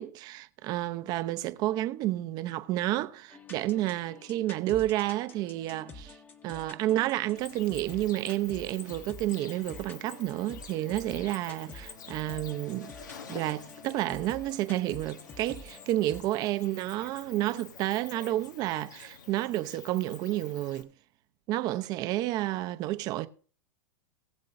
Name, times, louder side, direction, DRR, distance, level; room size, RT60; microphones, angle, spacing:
voice 1, 0.0-6.2 6.4-12.9 13.3-20.9 21.5-23.3, right 15 dB, 45° right, 0.8 m, -30 dB
sound 1, 3.3-16.2, left 3 dB, 20° left, 1.2 m, -48 dB
Cricket, 7.4-20.8, left 6 dB, 85° left, 1.3 m, -48 dB
20.5 x 7.5 x 2.7 m
hypercardioid pair, 110°, 10 cm